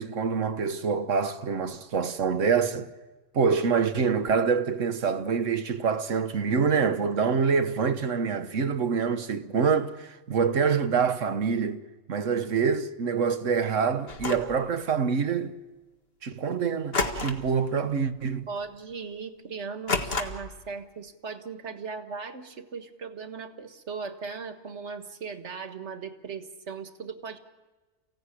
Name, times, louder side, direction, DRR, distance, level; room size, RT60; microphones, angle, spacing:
voice 1, 0.0-2.9 3.3-11.8 12.1-15.6 16.2-18.5, right 6 dB, 85° right, 1.5 m, -26 dB
sound 1, 14.1-14.6 16.9-17.6 17.9-18.2 18.6-18.7 19.9-20.6, left 3 dB, 55° left, 1.9 m, -30 dB
voice 2, 18.5-27.4, right 5 dB, 65° right, 1.8 m, -38 dB
29.0 x 16.5 x 9.9 m
omnidirectional pair, 1.3 m